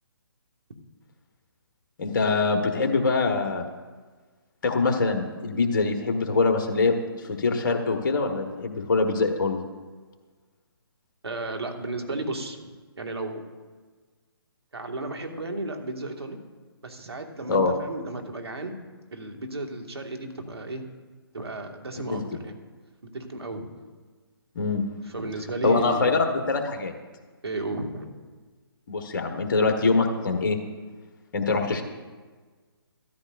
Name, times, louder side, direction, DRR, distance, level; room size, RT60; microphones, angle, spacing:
voice 1, 2.0-3.7 4.6-9.6 17.5-17.7 22.1-22.2 24.5-24.8 25.6-26.9 28.9-30.6 31.3-31.8, left 3 dB, 50° left, 4 dB, 1.4 m, -24 dB
voice 2, 11.2-12.6 13.0-13.4 14.7-16.4 16.8-18.7 19.1-20.8 21.3-22.6 23.1-23.6 25.1-26.3 27.4-28.1 31.7-31.8, right 2 dB, 75° right, 3 dB, 1.9 m, -33 dB
14.5 x 13.0 x 2.6 m, 1.4 s
figure-of-eight pair, 140°, 13 cm